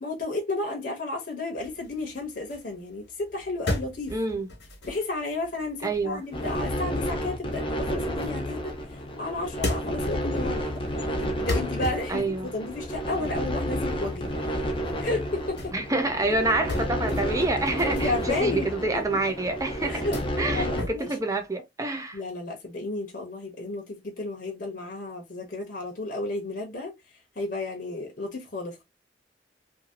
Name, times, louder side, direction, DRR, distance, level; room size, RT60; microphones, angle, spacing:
voice 1, 0.0-4.1 4.9-8.7 9.2-10.7 11.0-14.3 15.0-15.7 17.9-18.7 18.9-19.0 19.9-20.2 20.5-21.1 22.1-26.9 27.4-28.8, left 2 dB, 50° left, 0.9 m, -32 dB
sound 1, 1.5-8.9 9.3-19.2 19.5-21.4, left 2 dB, 80° left, 1.2 m, -37 dB
voice 2, 4.1-4.5 5.8-6.2 12.1-12.5 15.7-20.1 20.4-22.2, right 2 dB, 20° right, 0.5 m, -27 dB
sound 2, 6.3-20.8, equal, 30° left, 0.6 m, -31 dB
2.7 x 2.7 x 2.8 m
head